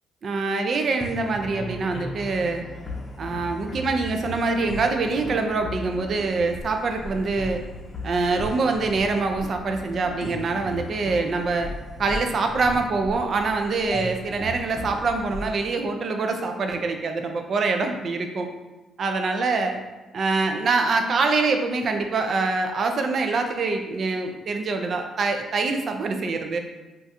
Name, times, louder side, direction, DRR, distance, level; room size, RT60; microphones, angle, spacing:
voice 1, 0.2-2.6 3.2-7.6 8.0-11.7 12.0-18.5 19.0-19.8 20.1-26.6, right 3 dB, 55° right, 5 dB, 0.4 m, -25 dB
sound 1, 1.0-16.6, left 1 dB, 35° left, 0.6 m, -37 dB
2.5 x 2.3 x 4.0 m, 1.1 s
cardioid pair, 90°, 0 cm